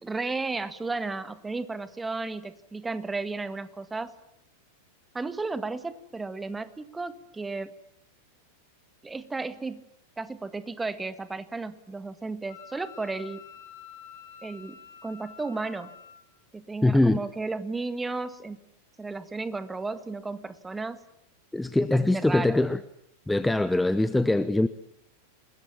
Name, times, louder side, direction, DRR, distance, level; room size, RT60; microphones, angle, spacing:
voice 1, 0.0-4.1 5.1-7.7 9.0-9.8 10.2-13.4 14.4-15.9 16.5-18.6 19.0-21.0 21.8-22.6, right 3 dB, 10° right, 13 dB, 1.9 m, -34 dB
Wind instrument woodwind instrument, 12.5-16.2, left 8 dB, 55° left, 3.5 m, -48 dB
voice 2, 16.8-17.2 21.5-22.8 23.3-24.7, left 2 dB, 5° left, 15 dB, 0.9 m, -22 dB
28.5 x 21.5 x 7.4 m, 0.77 s
figure-of-eight pair, 90°, 0 cm